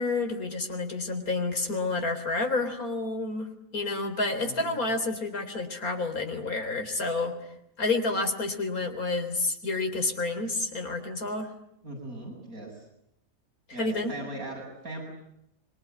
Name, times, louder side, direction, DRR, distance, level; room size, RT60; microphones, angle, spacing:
voice 1, 0.0-7.4 7.8-11.5 13.8-14.1, left 3 dB, 85° left, 6 dB, 4.2 m, -29 dB
voice 2, 4.4-4.8 11.8-12.7 13.7-15.0, right 2 dB, 75° right, 2 dB, 8.2 m, -39 dB
26.0 x 23.5 x 9.5 m, 0.80 s
omnidirectional pair, 1.5 m